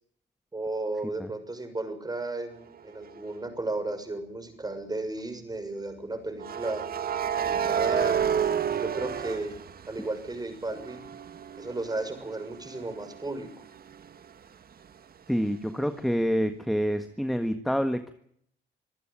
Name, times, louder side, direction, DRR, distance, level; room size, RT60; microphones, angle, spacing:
voice 1, 0.5-6.8 7.3-9.5 9.9-11.0 11.6-13.5, right 2 dB, 20° right, 8 dB, 6.6 m, -34 dB
sound 1, 3.1-3.3 6.4-10.3 10.7-14.3, right 8 dB, 50° right, 1.5 m, -30 dB
voice 2, 15.3-18.1, equal, ahead, 8 dB, 1.6 m, -27 dB
26.0 x 15.0 x 9.0 m, 0.68 s
cardioid pair, 90°, 20 cm